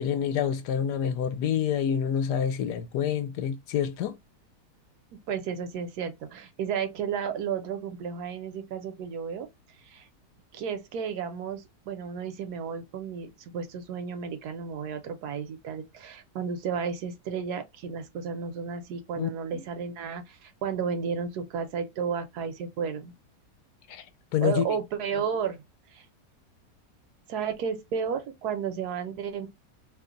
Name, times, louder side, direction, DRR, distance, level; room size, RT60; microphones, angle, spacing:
voice 1, 0.0-4.2 19.2-19.3 23.9-24.0 24.3-24.7, left 8 dB, 75° left, 1.1 m, -27 dB
voice 2, 5.3-9.5 9.8-10.1 10.5-23.1 24.4-25.6 25.9-26.0 27.3-29.5, right 6 dB, 70° right, 1.2 m, -33 dB
3.0 x 2.1 x 3.7 m
omnidirectional pair, 1.8 m